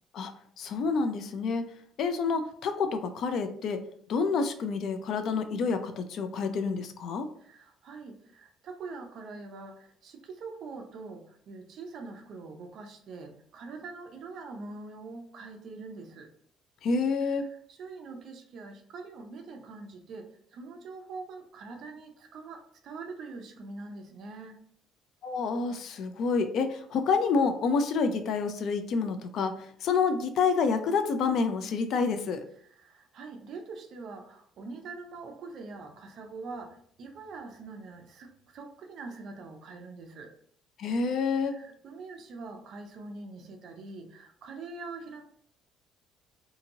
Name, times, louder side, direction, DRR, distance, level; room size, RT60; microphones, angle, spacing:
voice 1, 0.6-1.7 2.0-3.8 4.1-7.3 16.8-17.4 25.2-32.4 40.8-41.5, left 5 dB, 55° left, 8 dB, 0.3 m, -28 dB
voice 2, 7.4-16.3 17.2-24.6 32.6-40.3 41.4-45.2, right 3 dB, 55° right, 4 dB, 0.5 m, -44 dB
2.8 x 2.6 x 2.7 m, 0.63 s
cardioid pair, 145°, 0 cm